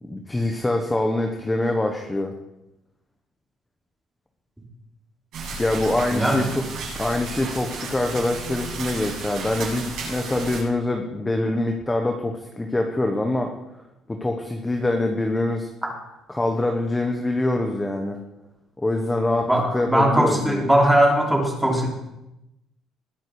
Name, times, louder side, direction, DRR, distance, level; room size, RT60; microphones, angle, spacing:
voice 1, 0.0-2.3 5.6-6.6 7.0-13.5 14.1-15.7 16.3-18.2 18.8-20.6, left 2 dB, 10° left, 3 dB, 1.3 m, -24 dB
sound 1, 5.3-10.6, right 4 dB, 65° right, 7.6 m, -33 dB
voice 2, 6.1-6.5 15.8-15.9 19.4-21.9, right 1 dB, 5° right, 0 dB, 3.4 m, -20 dB
21.0 x 10.0 x 4.9 m, 0.91 s
cardioid pair, 145°, 0 cm